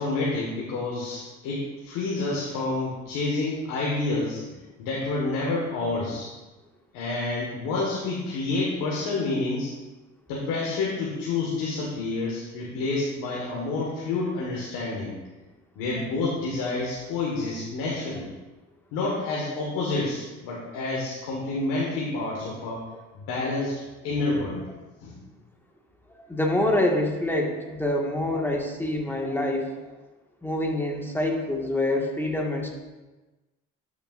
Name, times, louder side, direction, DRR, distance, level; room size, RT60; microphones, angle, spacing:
voice 1, 0.0-6.3 6.9-9.7 10.3-15.2 15.8-18.3 18.9-22.8 23.1-24.6 25.0-25.2, left 3 dB, 85° left, -4 dB, 1.7 m, -29 dB
voice 2, 26.2-29.9 30.4-32.7, left 1 dB, 5° left, 0 dB, 1.7 m, -26 dB
12.0 x 7.1 x 2.6 m, 1.2 s
supercardioid pair, 85°, 31 cm